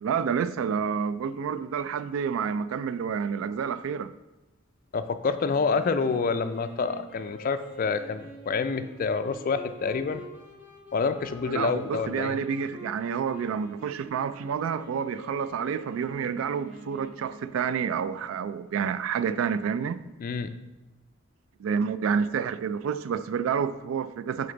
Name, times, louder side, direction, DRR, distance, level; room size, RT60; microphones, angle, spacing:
voice 1, 0.0-4.1 11.5-20.0 21.6-24.5, right 7 dB, 75° right, 0.3 m, -29 dB
voice 2, 4.9-10.2 10.9-12.4 20.2-20.5, left 5 dB, 45° left, 0.3 m, -28 dB
Wind instrument woodwind instrument, 5.4-17.8, right 1 dB, 10° right, 1.3 m, -46 dB
6.6 x 3.9 x 3.9 m
head